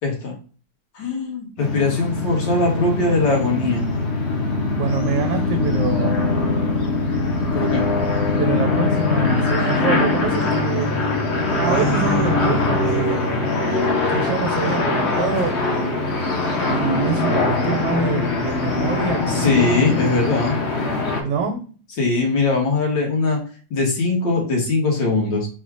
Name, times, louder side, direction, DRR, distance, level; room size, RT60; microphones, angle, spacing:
voice 1, 0.0-0.3 1.0-3.9 7.5-7.8 19.3-20.6 22.0-23.4 23.7-25.5, left 3 dB, 75° left, -1 dB, 2.1 m, -21 dB
sound 1, 1.6-21.2, left 3 dB, 45° left, 1.0 m, -22 dB
voice 2, 4.8-6.2 8.4-10.9 11.5-13.5 14.1-16.0 16.7-19.7 21.2-21.6, right 5 dB, 70° right, 4 dB, 1.4 m, -26 dB
4.2 x 2.4 x 4.7 m, 0.39 s
omnidirectional pair, 2.0 m